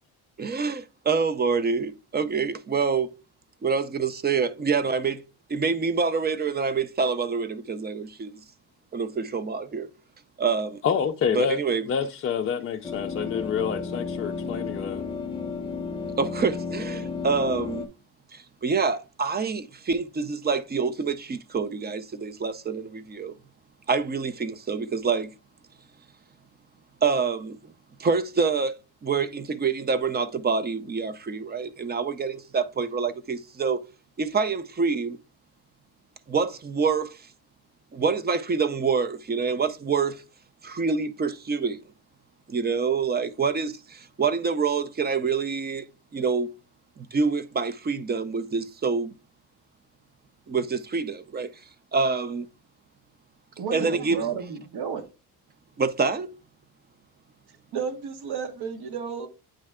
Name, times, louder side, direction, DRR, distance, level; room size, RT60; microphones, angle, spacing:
voice 1, 0.4-3.2 3.6-5.2 5.5-8.4 8.9-9.9 10.4-10.8 11.3-11.9 16.2-17.8 18.3-23.3 23.9-25.3 27.0-27.6 28.0-33.8 34.2-35.2 36.3-37.3 37.9-40.2 40.6-41.8 42.5-45.9 46.1-46.5 47.0-49.1 50.5-51.5 51.9-52.5 53.7-54.2 55.8-56.4, right 5 dB, 25° right, 0.4 m, -26 dB
voice 2, 10.8-11.6 11.9-15.1, left 7 dB, 35° left, 0.4 m, -27 dB
sound 1, 12.8-17.9, left 4 dB, 15° left, 0.8 m, -33 dB
voice 3, 53.6-55.1 57.7-59.3, right 7 dB, 65° right, 1.4 m, -32 dB
8.7 x 3.2 x 3.5 m
cardioid pair, 145°, 41 cm